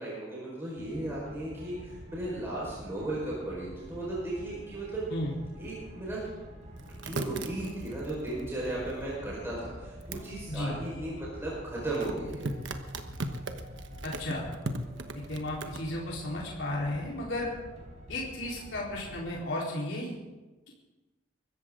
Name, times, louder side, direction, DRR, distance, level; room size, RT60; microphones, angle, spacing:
voice 1, 0.0-5.0 5.6-6.2 6.9-12.5, right 1 dB, 15° right, -6 dB, 4.9 m, -36 dB
sound 1, 0.8-19.3, equal, 35° right, 4.4 m, -46 dB
sound 2, 6.8-9.1 10.0-10.3 11.9-15.8, right 2 dB, 70° right, 1.2 m, -37 dB
voice 2, 14.0-14.4 15.3-17.5 18.1-20.1, left 1 dB, 75° left, -4 dB, 4.0 m, -34 dB
24.0 x 14.0 x 3.8 m, 1.2 s
head